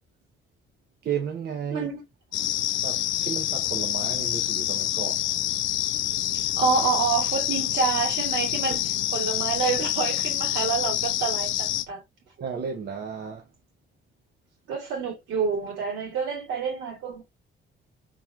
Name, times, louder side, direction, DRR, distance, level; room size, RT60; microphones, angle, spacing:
voice 1, 1.0-1.9 2.8-5.3 12.4-13.5, right 7 dB, 55° right, 0.8 m, -33 dB
voice 2, 1.7-2.0 6.3-8.9 9.1-12.0 14.7-17.2, right 5 dB, 80° right, 2.4 m, -28 dB
sound 1, 2.3-11.9, left 13 dB, 80° left, 0.4 m, -27 dB
3.8 x 3.1 x 2.3 m
cardioid pair, 90°, 20 cm